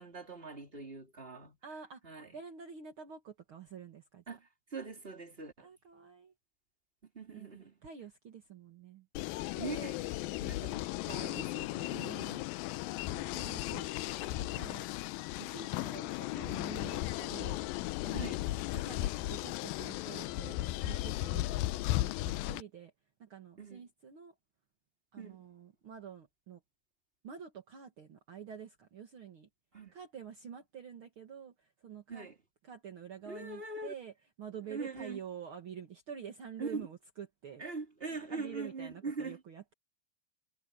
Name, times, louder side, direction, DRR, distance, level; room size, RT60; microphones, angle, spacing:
voice 1, 0.0-1.6 2.0-2.4 4.3-5.7 7.1-7.7 9.6-12.0 18.1-18.4 23.6-23.8 25.2-25.4 29.7-29.9 32.1-32.4 33.3-33.9 34.7-35.2 36.6-36.8 37.6-39.4, right 4 dB, 15° right, 3.7 m, -42 dB
voice 2, 1.6-2.0 2.3-4.2 5.6-6.3 7.3-7.5 7.8-9.1 11.9-12.4 13.1-13.9 14.4-14.8 15.4-17.6 18.0-18.4 18.7-20.6 20.8-21.4 21.9-22.9 23.2-24.3 25.1-26.6 27.2-29.5 29.9-32.3 32.6-34.1 34.4-37.6 38.1-39.7, right 7 dB, 45° right, 1.9 m, -48 dB
sound 1, 9.2-22.6, left 17 dB, 85° left, 2.1 m, -36 dB
omnidirectional pair, 4.8 m